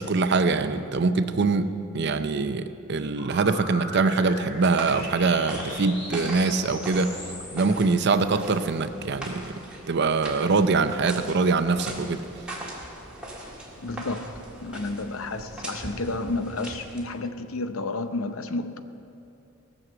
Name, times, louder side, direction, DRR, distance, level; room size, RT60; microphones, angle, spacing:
voice 1, 0.0-7.2 7.5-9.5 9.9-12.2, right 4 dB, 55° right, 10 dB, 0.6 m, -23 dB
sound 1, 3.2-8.7, left 1 dB, 55° left, 3.4 m, -40 dB
sound 2, 3.9-17.2, right 1 dB, 5° right, 1.8 m, -40 dB
voice 2, 13.8-14.3 14.6-18.8, left 2 dB, 80° left, 9 dB, 0.7 m, -31 dB
17.5 x 6.5 x 7.6 m, 2.7 s
head